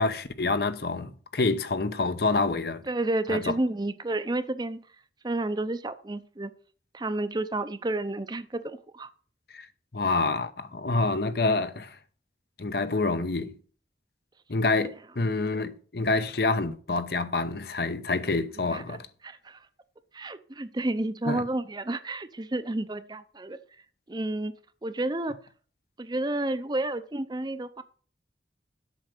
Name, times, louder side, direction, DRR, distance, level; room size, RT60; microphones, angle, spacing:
voice 1, 0.0-2.8 3.3-3.5 9.5-9.7 9.9-11.9 12.6-13.5 14.5-19.1 21.3-21.4, left 3 dB, 60° left, 0.9 m, -27 dB
voice 2, 2.9-4.8 5.2-6.5 6.9-9.1 18.6-19.0 19.2-19.7 20.1-23.6 24.1-24.5 24.8-25.4 26.0-27.8, right 2 dB, 25° right, 0.6 m, -31 dB
8.2 x 6.3 x 7.5 m
head